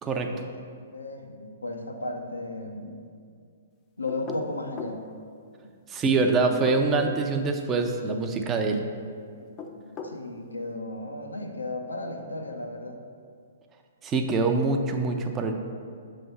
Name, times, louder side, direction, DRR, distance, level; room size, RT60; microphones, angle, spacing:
voice 1, 0.9-3.0 4.0-5.0 9.8-13.0, left 2 dB, 90° left, 3 dB, 0.6 m, -35 dB
sound 1, 4.1-5.0 6.5-7.3 9.4-10.2, left 4 dB, 30° left, 0.5 m, -39 dB
voice 2, 5.9-8.8 14.0-15.5, right 3 dB, 20° right, 4 dB, 0.5 m, -24 dB
6.8 x 3.4 x 5.4 m, 2.2 s
figure-of-eight pair, 120°, 0 cm